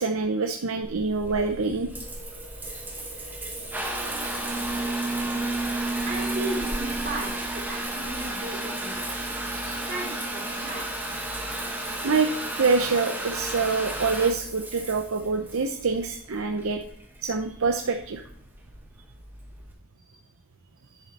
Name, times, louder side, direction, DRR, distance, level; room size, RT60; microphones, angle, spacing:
voice 1, 0.0-1.9 9.5-9.9 12.0-12.3 12.6-16.8 17.2-18.2, right 4 dB, 70° right, 5 dB, 0.7 m, -26 dB
Water tap faucet / Bathtub (filling or washing) / Trickle dribble, 0.8-19.7, right 2 dB, 10° right, 1.5 m, -32 dB
voice 2, 6.0-9.1 9.9-11.1, right 2 dB, 45° right, -1 dB, 3.1 m, -36 dB
10.5 x 7.4 x 4.2 m, 0.65 s
head